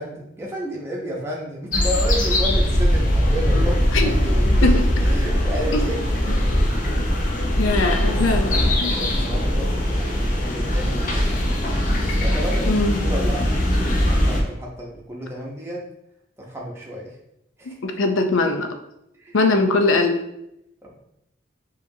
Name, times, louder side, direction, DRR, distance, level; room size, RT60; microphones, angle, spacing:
voice 1, 0.0-6.0 6.3-6.6 8.0-8.4 8.7-11.6 12.2-15.8 16.4-17.1 17.6-17.8 19.2-19.5 20.8-21.0, equal, 15° right, -3 dB, 0.7 m, -32 dB
sound 1, 1.7-14.4, equal, 40° left, 0.6 m, -20 dB
voice 2, 3.5-4.1 4.6-4.8 5.7-5.9 6.3-6.4 6.9-7.0 7.6-9.0 12.7-13.0 17.8-18.7 19.3-20.2, left 3 dB, 85° left, 5 dB, 0.5 m, -21 dB
4.9 x 3.0 x 2.7 m, 0.83 s
head